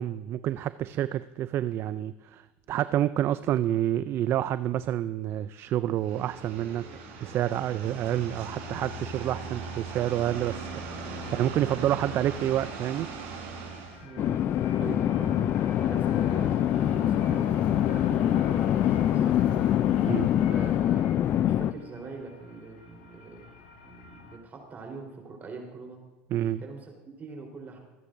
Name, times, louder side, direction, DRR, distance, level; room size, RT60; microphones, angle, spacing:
voice 1, 0.0-6.9 7.2-10.7 11.0-13.1 20.1-20.3 26.3-26.6, right 12 dB, 45° right, 15 dB, 0.4 m, -28 dB
sound 1, 6.0-14.0, right 4 dB, 75° right, 4.4 m, -39 dB
sound 2, 8.5-24.4, left 5 dB, 85° left, 1.8 m, -43 dB
sound 3, 14.2-21.7, left 11 dB, 40° left, 0.4 m, -24 dB
voice 2, 14.8-17.5 17.9-19.6 20.2-23.4 23.8-26.0 26.6-26.9 27.2-27.8, right 4 dB, 30° right, 1 dB, 3.8 m, -43 dB
25.5 x 9.6 x 2.6 m, 1.2 s
supercardioid pair, 100°, 6 cm